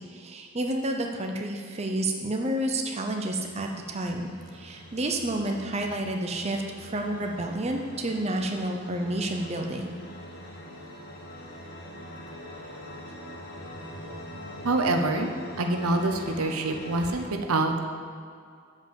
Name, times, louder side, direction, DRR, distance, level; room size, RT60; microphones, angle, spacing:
voice 1, 0.1-10.0, right 1 dB, 30° right, 2 dB, 0.6 m, -30 dB
sound 1, 2.7-17.2, equal, 50° left, 1.5 m, -43 dB
voice 2, 14.6-15.3 15.6-17.8, right 2 dB, 90° right, 5 dB, 0.8 m, -26 dB
7.7 x 5.4 x 7.4 m, 2.3 s
head